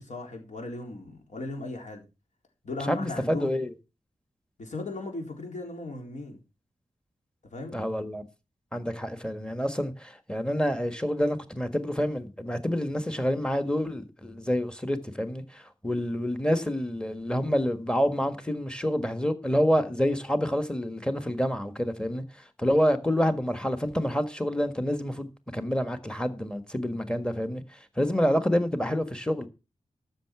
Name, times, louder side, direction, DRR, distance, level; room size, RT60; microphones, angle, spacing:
voice 1, 0.0-2.0 2.6-3.5 4.6-6.4 7.5-7.8, left 2 dB, 75° left, 3.8 m, -37 dB
voice 2, 2.9-3.7 7.7-8.2 8.7-22.2 22.6-29.5, equal, 5° left, 1.5 m, -28 dB
13.0 x 6.7 x 5.9 m
wide cardioid pair, 100°, 13 cm